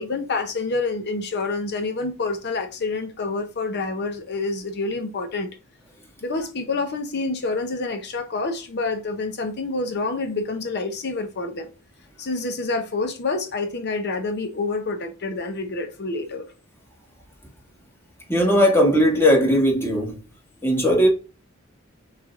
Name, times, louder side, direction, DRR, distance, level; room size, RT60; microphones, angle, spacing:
voice 1, 0.0-5.5 6.2-11.7 12.2-16.5, left 3 dB, 55° left, 0.6 m, -27 dB
voice 2, 18.3-20.1 20.6-21.1, equal, 10° left, 1.5 m, -18 dB
6.4 x 3.2 x 2.4 m
head